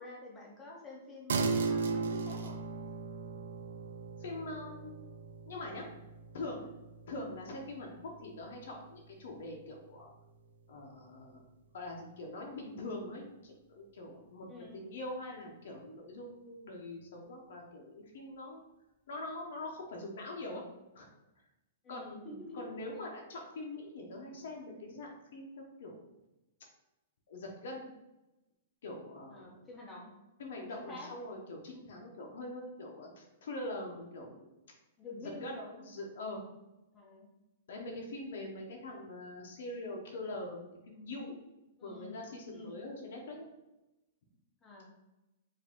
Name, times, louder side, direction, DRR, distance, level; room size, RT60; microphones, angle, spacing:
voice 1, 0.0-2.5 14.5-14.8 21.8-22.6 22.9-23.0 29.3-30.1 30.7-31.1 35.0-35.9 36.9-37.3 41.8-42.2 42.5-42.8 44.6-44.9, left 2 dB, 10° left, -3 dB, 0.7 m, -48 dB
sound 1, 1.3-11.0, right 4 dB, 75° right, 0.4 m, -38 dB
voice 2, 4.2-5.1 5.5-5.9 6.3-6.7 7.1-10.1 10.7-11.4 11.7-18.6 19.1-20.6 20.9-21.1 21.9-26.0 27.3-27.9 28.8-29.5 30.4-34.5 35.4-35.5 35.9-36.4 37.7-41.4 41.8-43.4, left 2 dB, 60° left, 0 dB, 0.8 m, -43 dB
4.8 x 2.6 x 3.5 m, 0.99 s
hypercardioid pair, 180°, 0 cm